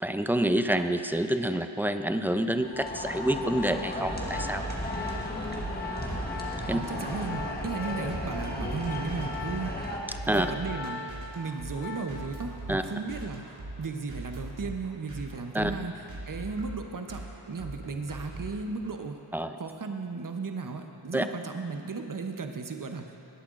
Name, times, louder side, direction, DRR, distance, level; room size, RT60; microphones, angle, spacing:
voice 1, 0.0-4.6 6.7-6.8 10.3-10.5 12.7-12.8 15.5-15.7 19.3-19.5 21.1-21.3, right 1 dB, 5° right, 8 dB, 0.4 m, -27 dB
Organ, 2.4-12.4 12.7-13.0, left 4 dB, 75° left, 1.0 m, -41 dB
sound 1, 2.6-10.0, left 1 dB, 20° left, 1.4 m, -35 dB
sound 2, 3.6-19.0, right 2 dB, 80° right, 1.7 m, -42 dB
voice 2, 6.7-9.9 10.3-13.4 13.8-15.9 16.3-19.2 19.6-23.1, right 4 dB, 45° right, 5 dB, 0.8 m, -35 dB
18.5 x 8.6 x 2.5 m, 2.9 s
wide cardioid pair, 45°, 46 cm